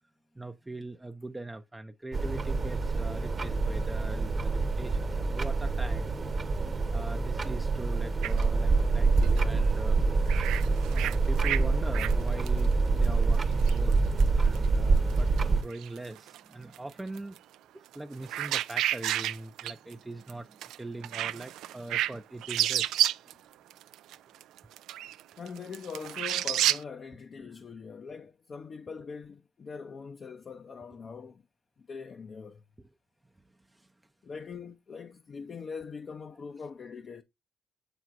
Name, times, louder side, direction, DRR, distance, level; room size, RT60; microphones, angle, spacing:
voice 1, 0.3-6.2 6.9-10.0 10.9-14.0 14.4-17.4 17.7-23.1 27.4-27.5 32.8-32.9 33.7-33.9, right 2 dB, 15° right, 0.5 m, -41 dB
sound 1, 2.1-15.6, right 3 dB, 35° right, 1.0 m, -26 dB
sound 2, 8.2-8.4 9.2-9.4 10.3-11.6 11.9-12.1 12.5-12.7 13.0-13.9 14.2-14.7 15.0-15.4 15.7-16.4 16.7-17.4 17.9-19.9 20.3-20.4 20.6-20.8 21.0-22.1 22.4-23.3 23.7-26.8, right 13 dB, 90° right, 0.3 m, -30 dB
voice 2, 25.4-31.4 31.9-32.6 34.2-37.2, left 5 dB, 45° left, 0.7 m, -42 dB
7.0 x 6.0 x 2.5 m
cardioid pair, 90°, 0 cm